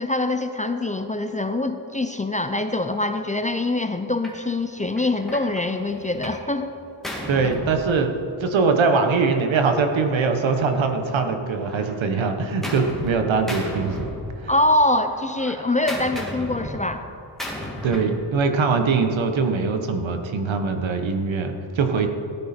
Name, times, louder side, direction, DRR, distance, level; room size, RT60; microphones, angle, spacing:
voice 1, 0.0-6.7 14.5-17.0, left 2 dB, 15° left, 8 dB, 0.4 m, -24 dB
Gunshot gunfire, 4.2-4.4 5.0-6.5 6.7-8.5 9.4-11.2 11.6-13.2 13.5-14.7 15.0-18.2, left 1 dB, ahead, 2.0 m, -35 dB
voice 2, 7.3-8.1 8.4-14.0 14.4-14.5 17.8-22.1, right 4 dB, 75° right, 6 dB, 1.3 m, -22 dB
15.5 x 9.8 x 4.4 m, 2.8 s
wide cardioid pair, 120°, 46 cm